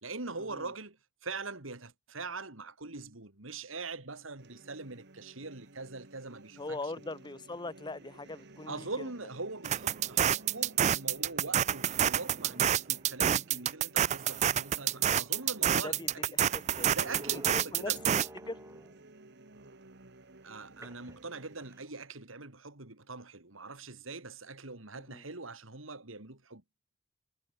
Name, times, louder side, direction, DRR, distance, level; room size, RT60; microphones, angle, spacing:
voice 1, 0.0-6.9 8.7-16.0 16.3-16.6 16.9-18.0 20.4-26.6, right 3 dB, 90° right, 3.2 m, -42 dB
sound 1, 4.4-21.8, right 2 dB, 60° right, 2.5 m, -55 dB
voice 2, 6.6-9.1 15.8-17.0 17.3-18.0 18.5-18.6 25.1-25.2, left 2 dB, 25° left, 1.1 m, -41 dB
sound 2, 9.6-18.3, right 10 dB, 35° right, 0.3 m, -28 dB
sound 3, 15.1-19.1 20.8-21.9, right 1 dB, 15° right, 6.3 m, -51 dB
head